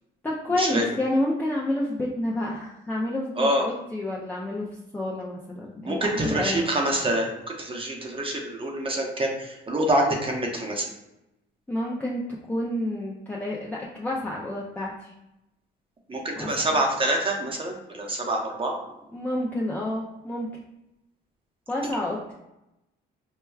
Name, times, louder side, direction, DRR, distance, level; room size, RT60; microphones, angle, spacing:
voice 1, 0.2-4.7 4.9-6.7 11.7-12.2 12.5-15.1 16.4-16.8 19.1-20.5 21.7-22.3, left 1 dB, 10° left, -4 dB, 0.4 m, -29 dB
voice 2, 5.9-10.9 16.1-18.7, right 1 dB, 25° right, 0 dB, 0.7 m, -26 dB
4.3 x 2.2 x 2.3 m, 0.90 s
cardioid pair, 90°, 20 cm